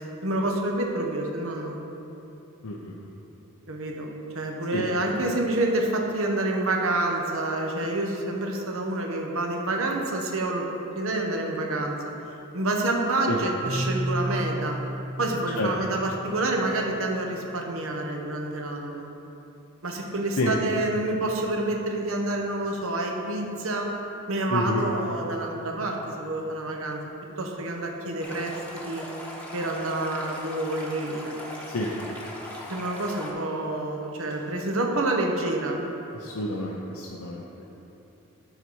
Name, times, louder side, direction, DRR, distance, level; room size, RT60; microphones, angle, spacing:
voice 1, 0.2-1.8 3.7-10.6 10.9-12.0 12.5-14.7 15.2-19.1 19.8-23.9 24.3-27.0 27.4-29.0 29.5-31.3 32.7-35.8, right 2 dB, 70° right, 1 dB, 1.0 m, -28 dB
voice 2, 2.6-3.1 4.7-4.8 13.3-13.4 15.6-15.7 20.4-20.5 24.5-24.8 31.7-31.9 36.1-37.6, left 2 dB, 75° left, -2 dB, 0.7 m, -29 dB
Marimba xylophone, 13.6-17.5, right 1 dB, 35° right, 0.7 m, -33 dB
Stream, 28.2-33.3, left 1 dB, 5° left, 1.0 m, -39 dB
12.5 x 4.1 x 4.7 m, 3.0 s
head